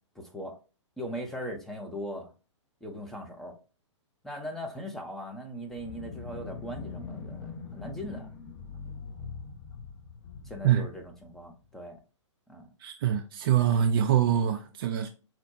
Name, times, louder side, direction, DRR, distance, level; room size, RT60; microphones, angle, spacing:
voice 1, 0.2-0.6 1.0-2.3 2.8-3.6 4.2-8.3 10.4-12.0 12.5-12.7, equal, ahead, 0.6 m, -39 dB
sound 1, 5.7-11.7, left 5 dB, 35° left, 0.8 m, -42 dB
voice 2, 12.8-15.1, right 9 dB, 45° right, 0.4 m, -24 dB
4.3 x 2.2 x 2.8 m
figure-of-eight pair, 110°, 16 cm